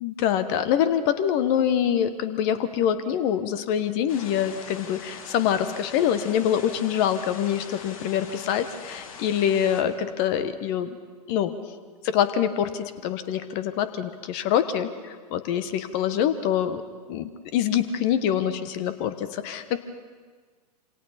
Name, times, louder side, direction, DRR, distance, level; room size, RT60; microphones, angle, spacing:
voice 1, 0.0-10.9 11.3-11.5 12.0-16.8 17.1-19.8, left 9 dB, 35° left, 11 dB, 1.3 m, -25 dB
sound 1, 4.1-9.8, left 5 dB, 55° left, 2.7 m, -42 dB
27.0 x 26.0 x 4.2 m, 1.5 s
figure-of-eight pair, 105°, 21 cm